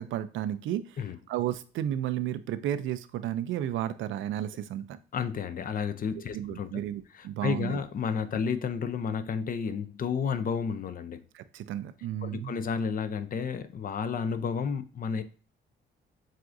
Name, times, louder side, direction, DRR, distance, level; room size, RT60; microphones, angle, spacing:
voice 1, 0.0-1.0 1.3-5.0 6.3-7.8 11.3-12.5, right 11 dB, 75° right, 0.4 m, -33 dB
voice 2, 5.1-6.7 7.1-11.2 12.2-15.2, left 6 dB, 45° left, 0.5 m, -31 dB
7.5 x 2.5 x 2.5 m
cardioid pair, 90°, 20 cm